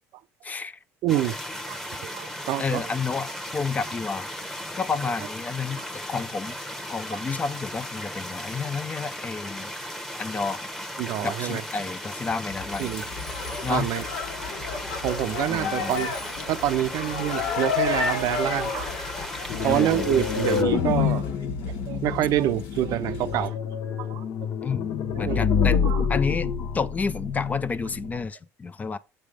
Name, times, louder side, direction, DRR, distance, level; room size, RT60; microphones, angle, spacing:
voice 1, 0.4-0.8 2.6-4.3 4.8-6.6 6.9-9.7 10.2-10.6 11.2-12.9 13.6-13.9 15.5-15.9 19.6-20.1 24.6-25.8 26.1-26.5 26.7-29.0, left 4 dB, 25° left, 0.4 m, -30 dB
voice 2, 1.0-1.3 1.7-2.9 7.1-7.2 11.0-11.6 12.8-13.0 13.5-14.0 15.0-16.1 16.5-18.9 19.6-21.2 21.7-23.5 24.0-24.2 25.2-25.4 25.8-26.0, right 12 dB, 65° right, 0.5 m, -27 dB
sound 1, 1.1-20.6, equal, 5° left, 1.0 m, -36 dB
sound 2, 12.5-23.5, left 5 dB, 80° left, 1.9 m, -32 dB
sound 3, 19.5-28.2, left 7 dB, 60° left, 0.9 m, -27 dB
7.4 x 3.4 x 5.0 m
supercardioid pair, 100°, 7 cm